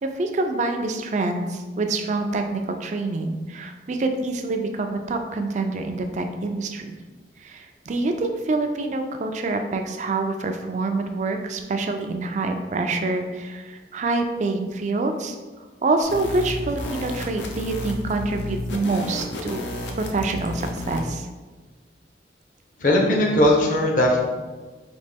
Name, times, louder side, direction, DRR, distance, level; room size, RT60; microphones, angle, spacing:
voice 1, 0.0-6.9 7.4-15.4 15.8-19.7 20.0-21.3, right 3 dB, 40° right, 5 dB, 0.4 m, -26 dB
sound 1, 16.0-21.1, left 1 dB, 85° left, 0.6 m, -32 dB
voice 2, 22.8-24.2, left 1 dB, 45° left, -1 dB, 0.7 m, -18 dB
4.2 x 2.8 x 3.4 m, 1.3 s
head